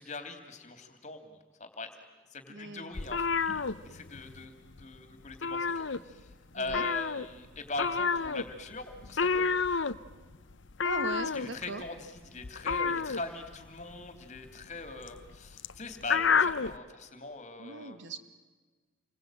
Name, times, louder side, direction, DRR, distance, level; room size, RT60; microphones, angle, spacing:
voice 1, 0.0-1.9 2.3-4.5 4.8-6.3 6.5-9.5 11.3-18.0, left 3 dB, 35° left, 7 dB, 3.1 m, -41 dB
voice 2, 2.5-2.9 6.6-6.9 10.8-11.8 17.6-18.2, right 2 dB, 65° right, 10 dB, 1.7 m, -39 dB
sound 1, 2.9-4.5 4.7-5.0 5.2-6.3 6.7-16.8, left 5 dB, 65° left, 0.8 m, -30 dB
29.0 x 22.5 x 9.1 m, 1.3 s
head